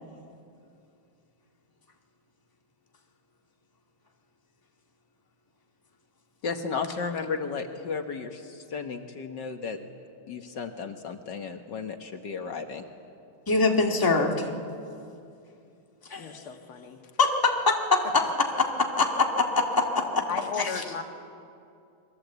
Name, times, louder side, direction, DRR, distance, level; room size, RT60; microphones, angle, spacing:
voice 1, 6.4-9.8 10.3-12.8, left 5 dB, 60° left, 5 dB, 1.8 m, -34 dB
voice 2, 13.5-14.5 16.1-16.4 17.2-20.2 20.6-20.7, left 3 dB, 10° left, 1 dB, 1.8 m, -24 dB
voice 3, 16.2-17.0 18.0-18.1 20.3-21.0, left 6 dB, 85° left, 4 dB, 2.5 m, -35 dB
28.0 x 22.0 x 8.2 m, 2.6 s
omnidirectional pair, 2.3 m